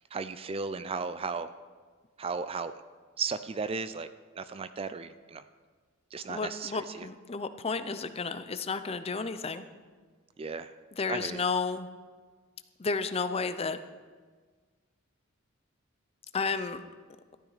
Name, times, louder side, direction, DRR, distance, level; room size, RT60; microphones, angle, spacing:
voice 1, 0.1-1.5 2.2-2.7 3.2-4.1 4.4-5.4 6.1-7.1 10.4-10.7 11.1-11.4, right 5 dB, 25° right, 12 dB, 0.4 m, -35 dB
voice 2, 6.3-9.6 11.0-11.9 12.8-13.8 16.3-16.8, left 4 dB, 30° left, 11 dB, 0.5 m, -32 dB
13.5 x 12.0 x 4.0 m, 1.5 s
head